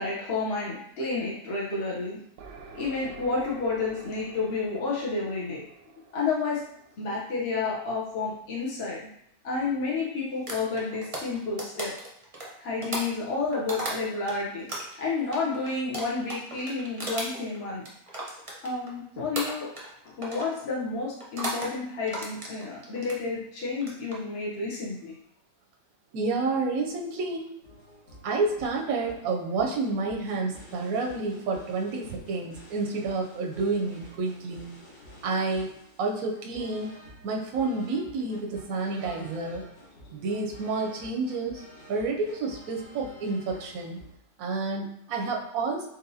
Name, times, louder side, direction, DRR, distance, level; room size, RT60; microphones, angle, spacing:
voice 1, 0.0-2.2 2.7-5.6 6.1-6.6 7.0-9.1 9.4-11.9 12.6-14.7 15.0-17.8 18.6-19.7 20.0-25.2, left 4 dB, 50° left, -6 dB, 0.8 m, -30 dB
sound 1, 2.4-8.0, right 4 dB, 90° right, 1.2 m, -49 dB
sound 2, 10.5-14.3 14.7-19.0 19.3-19.9 20.2-20.5 21.2-21.7 22.1-23.2 23.7-24.2, right 1 dB, 35° right, 0.5 m, -35 dB
voice 2, 26.1-27.5 28.2-34.7 35.2-35.7 36.0-37.0 37.2-39.6 40.1-41.6 41.9-44.0 44.4-45.9, right 3 dB, 70° right, 1 dB, 0.9 m, -29 dB
sound 3, 27.6-44.1, equal, 85° left, 1.8 m, -50 dB
4.0 x 4.0 x 2.7 m, 0.75 s
omnidirectional pair, 1.8 m